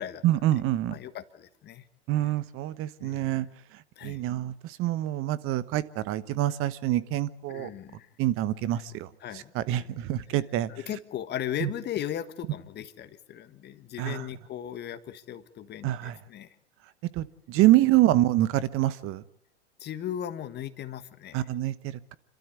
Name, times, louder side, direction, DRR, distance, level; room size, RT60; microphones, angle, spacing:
voice 1, 0.2-1.0 2.1-3.5 4.0-7.7 8.2-9.1 9.3-10.7 11.6-11.7 14.0-14.2 15.8-16.2 17.1-19.2 21.3-22.1, right 14 dB, 35° right, 1.1 m, -26 dB
voice 2, 0.9-1.9 3.0-3.3 4.0-4.2 7.5-8.1 9.2-9.9 10.7-16.5 17.5-17.7 19.8-21.5, left 10 dB, 30° left, 1.5 m, -37 dB
27.0 x 13.0 x 8.5 m
hypercardioid pair, 110°, 35 cm